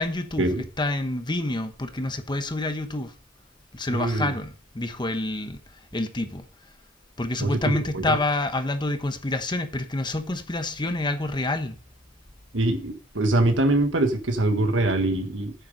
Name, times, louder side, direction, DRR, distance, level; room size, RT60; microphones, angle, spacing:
voice 1, 0.0-3.1 3.7-5.6 5.9-6.4 7.2-11.7, left 2 dB, 25° left, 1.0 m, -28 dB
voice 2, 3.9-4.3 7.4-7.6 7.9-8.2 12.5-15.5, right 2 dB, 80° right, 1.6 m, -23 dB
9.1 x 7.1 x 5.2 m
head